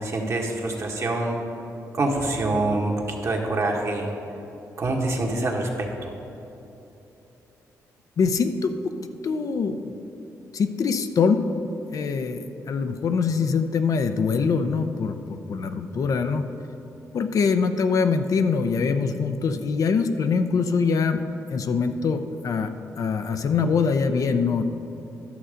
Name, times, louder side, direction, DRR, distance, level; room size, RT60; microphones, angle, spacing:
voice 1, 0.0-1.4 1.9-4.1 4.8-5.9, right 2 dB, 50° right, 0 dB, 1.5 m, -25 dB
voice 2, 8.2-8.9 9.2-10.0 10.5-16.5 17.1-21.2 21.5-22.7 23.0-24.6, left 5 dB, 65° left, 8 dB, 0.6 m, -24 dB
11.5 x 6.5 x 5.0 m, 2.9 s
cardioid pair, 85°, 6 cm